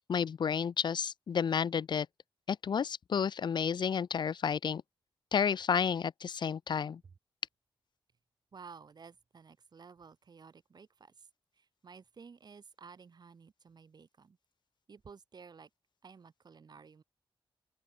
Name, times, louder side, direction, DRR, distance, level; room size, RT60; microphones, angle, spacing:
voice 1, 0.1-2.1 2.5-4.8 5.3-7.0, left 7 dB, 55° left, 0.7 m, -31 dB
voice 2, 8.5-11.3 11.5-14.4 14.9-15.7 16.0-17.0, right 5 dB, 50° right, 7.2 m, -54 dB
open air
wide cardioid pair, 135°, 9 cm